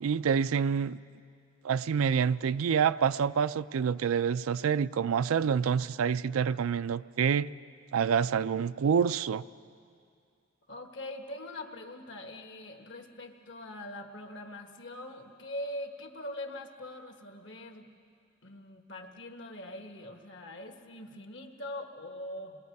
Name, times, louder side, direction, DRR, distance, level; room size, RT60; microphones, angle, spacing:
voice 1, 0.0-1.0 1.6-7.5 7.9-9.4, right 7 dB, 90° right, 15 dB, 0.4 m, -27 dB
voice 2, 10.7-17.9 18.4-22.6, left 1 dB, 60° left, 4 dB, 1.5 m, -42 dB
28.0 x 20.5 x 4.7 m, 2.3 s
head